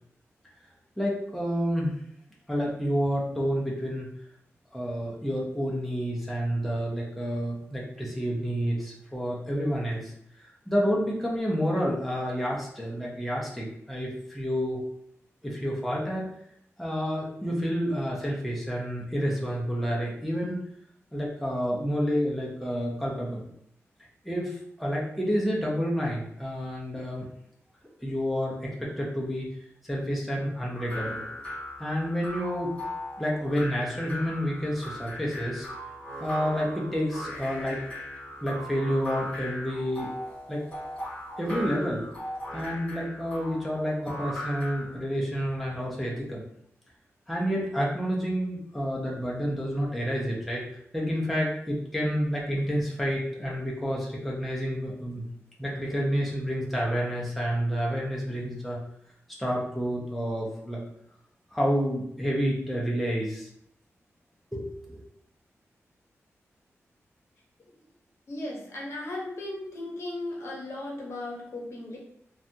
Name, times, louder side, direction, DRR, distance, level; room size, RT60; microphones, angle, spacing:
voice 1, 1.0-1.9 2.5-4.1 4.7-10.1 10.7-14.8 15.4-16.3 16.8-20.6 21.1-23.4 24.2-27.2 28.0-29.5 29.8-31.2 31.8-32.7 33.2-35.7 36.2-37.8 38.4-40.1 40.5-40.6 41.4-42.0 42.5-46.4 47.3-50.6 50.9-55.2 55.6-58.8 59.4-60.8 61.5-63.5 64.5-65.0, equal, ahead, -4 dB, 0.5 m, -29 dB
sound 1, 30.7-45.0, equal, 30° left, 1.2 m, -38 dB
voice 2, 68.3-72.0, left 1 dB, 60° left, -2 dB, 0.7 m, -36 dB
2.6 x 2.2 x 2.6 m, 0.71 s
wide cardioid pair, 155°, 5 cm